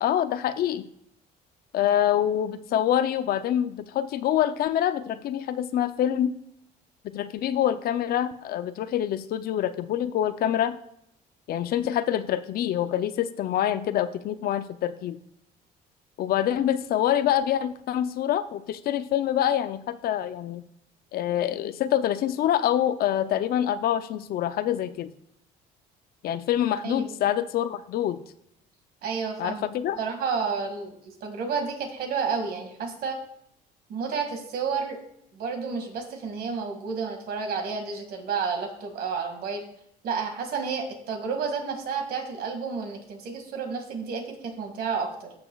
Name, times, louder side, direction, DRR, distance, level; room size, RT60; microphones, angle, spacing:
voice 1, 0.0-0.9 1.7-6.3 7.0-10.8 11.5-15.2 16.2-20.6 21.1-25.1 26.2-28.2 29.4-30.0, left 11 dB, 65° left, 12 dB, 0.6 m, -26 dB
voice 2, 29.0-29.7 30.0-33.2 33.9-35.0 35.3-39.6 40.0-45.3, right 5 dB, 65° right, 4 dB, 2.1 m, -31 dB
14.0 x 6.5 x 2.4 m, 0.75 s
cardioid pair, 110°, 17 cm